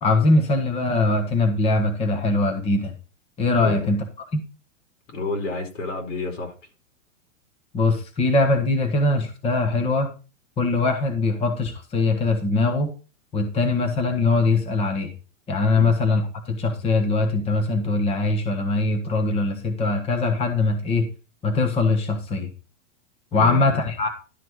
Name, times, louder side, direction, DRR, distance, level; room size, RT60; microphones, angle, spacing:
voice 1, 0.0-2.9 3.4-4.0 4.3-4.4 7.7-10.1 10.6-12.9 13.3-15.1 15.5-16.2 16.5-21.0 21.4-22.5 23.3-24.1, left 3 dB, 15° left, 1.4 m, -21 dB
voice 2, 3.6-3.9 5.1-6.5 15.7-15.9 23.3-23.8, left 3 dB, 75° left, 4.9 m, -30 dB
12.0 x 6.0 x 4.7 m
supercardioid pair, 155°, 38 cm